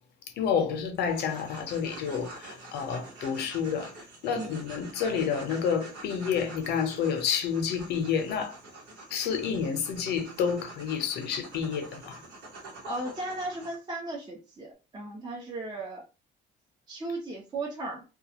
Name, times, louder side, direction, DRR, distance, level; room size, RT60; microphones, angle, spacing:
voice 1, 0.3-8.6 9.1-12.2, left 7 dB, 75° left, 0.7 m, -29 dB
sound 1, 0.9-13.7, right 2 dB, 75° right, 1.1 m, -47 dB
voice 2, 12.8-16.0 16.9-18.0, right 2 dB, 25° right, 0.7 m, -36 dB
2.3 x 2.3 x 2.8 m
cardioid pair, 110°, 17 cm